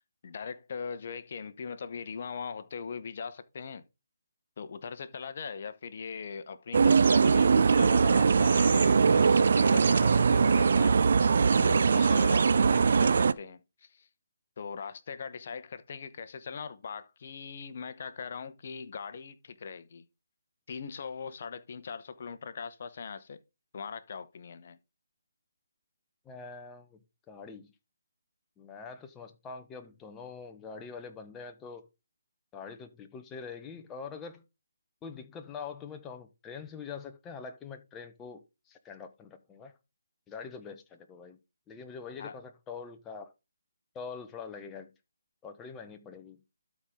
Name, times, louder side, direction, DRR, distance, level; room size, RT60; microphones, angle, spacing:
voice 1, 0.2-3.8 4.6-11.1 11.6-14.1 14.6-20.0 20.7-23.4 23.7-24.8 42.2-42.3, left 5 dB, 45° left, 0.9 m, -40 dB
sound 1, 6.7-13.3, right 5 dB, 55° right, 0.4 m, -22 dB
voice 2, 12.2-12.5 26.2-27.7 28.6-31.9 32.5-34.4 35.0-39.7 40.3-41.4 41.7-43.3 43.9-44.9 45.4-46.4, left 5 dB, 15° left, 0.9 m, -44 dB
12.5 x 4.3 x 3.7 m
figure-of-eight pair, 150°, 0 cm